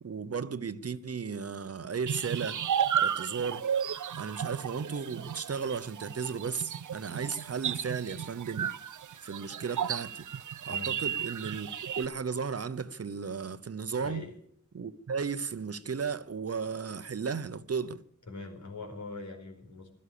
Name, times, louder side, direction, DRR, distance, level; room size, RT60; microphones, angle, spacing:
voice 1, 0.0-2.6 3.0-3.6 4.2-8.7 9.2-10.3 10.7-11.7 12.0-14.2 14.7-18.0, right 5 dB, 55° right, 0.9 m, -35 dB
sound 1, 2.1-12.1, right 8 dB, 90° right, 0.6 m, -33 dB
voice 2, 10.7-11.0 14.0-14.3 18.3-20.0, left 3 dB, 75° left, 4.9 m, -42 dB
16.5 x 13.0 x 6.8 m
wide cardioid pair, 105°, 30 cm